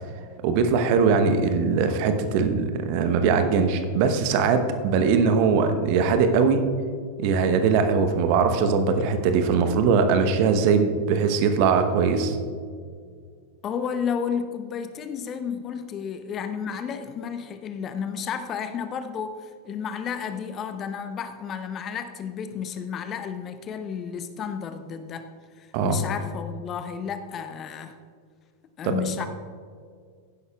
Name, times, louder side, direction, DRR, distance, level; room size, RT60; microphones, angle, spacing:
voice 1, 0.4-6.7 7.2-12.4 25.7-26.0 28.8-29.0, right 5 dB, 45° right, 7 dB, 1.0 m, -21 dB
voice 2, 13.6-25.3 25.6-27.9 28.8-29.3, left 7 dB, 30° left, 10 dB, 0.7 m, -32 dB
15.0 x 11.0 x 2.4 m, 2.1 s
figure-of-eight pair, 90°, 0 cm